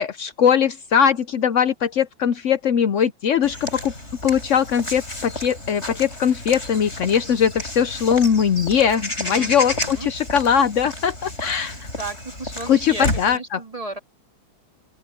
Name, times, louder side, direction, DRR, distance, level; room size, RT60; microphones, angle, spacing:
voice 1, 0.0-3.9 4.2-11.8 12.7-13.6, left 8 dB, 80° left, 0.6 m, -20 dB
Walk footsteps / Bird vocalization bird call bird song, 3.4-13.4, left 1 dB, 35° left, 8.0 m, -32 dB
voice 2, 9.3-10.1 12.0-14.0, right 2 dB, 20° right, 2.4 m, -34 dB
open air
omnidirectional pair, 2.1 m